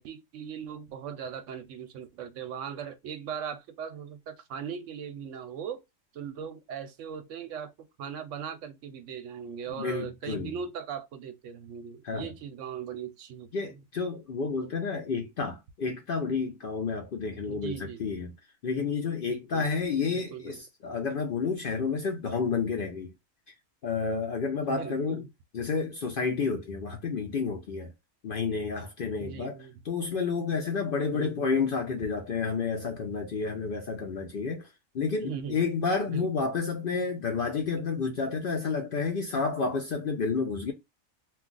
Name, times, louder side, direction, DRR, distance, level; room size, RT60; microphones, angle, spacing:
voice 1, 0.0-5.8 6.1-13.8 17.5-18.1 19.2-19.7 20.1-20.6 24.6-25.3 29.2-29.8 31.1-31.6 35.2-35.7 36.1-36.5, right 7 dB, 70° right, 0.9 m, -39 dB
voice 2, 9.7-10.5 12.0-12.3 13.5-18.3 18.6-23.1 23.8-25.2 25.5-27.9 28.2-34.7 34.9-40.7, left 5 dB, 55° left, 0.6 m, -30 dB
2.4 x 2.3 x 3.7 m
omnidirectional pair, 1.4 m